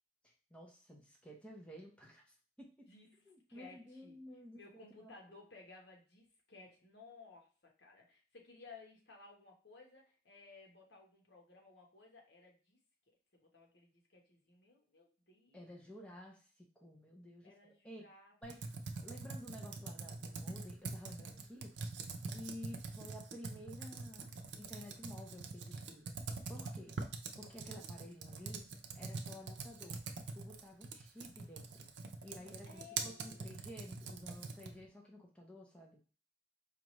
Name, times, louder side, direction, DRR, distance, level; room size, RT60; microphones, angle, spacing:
voice 1, 0.5-2.9 3.3-5.1 15.5-18.1 18.4-18.6 19.0-21.7 22.3-24.3 24.6-26.1 26.5-26.9 27.4-28.6 28.9-30.0 30.3-31.9 32.2-36.0, left 1 dB, 5° left, -1 dB, 0.8 m, -52 dB
voice 2, 2.9-4.2 4.5-12.8 13.3-15.8 17.4-18.4 22.0-22.2 32.2-33.9 34.3-34.5, left 3 dB, 75° left, 1 dB, 1.2 m, -59 dB
Computer keyboard, 18.4-34.9, right 4 dB, 80° right, 0.6 m, -44 dB
4.8 x 2.5 x 3.1 m, 0.37 s
head